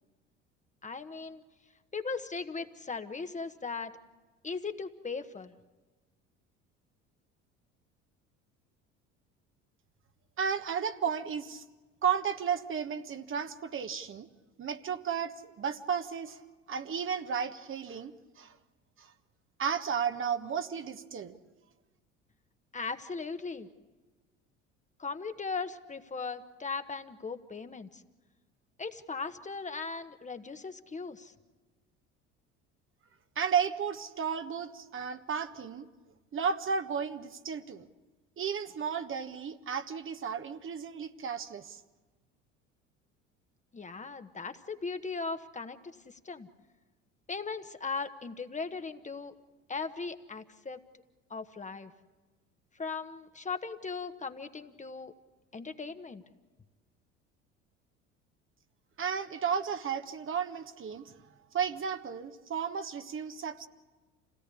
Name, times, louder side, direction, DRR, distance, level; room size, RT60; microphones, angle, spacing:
voice 1, 0.8-1.4 1.9-3.9 4.4-5.5 22.7-23.7 25.0-28.0 28.8-31.3 43.7-46.5 47.3-49.3 49.7-50.8 51.3-51.9 52.8-55.1 55.5-56.2, left 4 dB, 20° left, 8 dB, 1.4 m, -38 dB
voice 2, 10.4-11.6 12.0-14.3 14.6-16.4 16.7-18.5 19.0-19.1 19.6-21.4 33.3-35.9 36.3-37.9 38.4-41.8 59.0-61.1 61.5-63.7, right 7 dB, 35° right, 8 dB, 1.4 m, -33 dB
28.5 x 17.5 x 8.5 m, 1.3 s
figure-of-eight pair, 65°, 37 cm